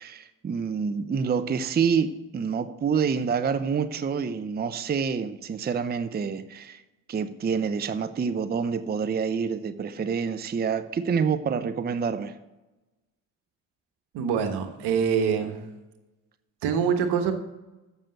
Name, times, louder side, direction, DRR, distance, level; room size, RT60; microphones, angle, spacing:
voice 1, 0.0-6.8 7.1-12.4, right 6 dB, 25° right, 11 dB, 0.6 m, -27 dB
voice 2, 14.1-15.7 16.6-17.3, right 7 dB, 70° right, 7 dB, 1.3 m, -25 dB
7.3 x 6.9 x 7.8 m, 1.0 s
hypercardioid pair, 65°, 42 cm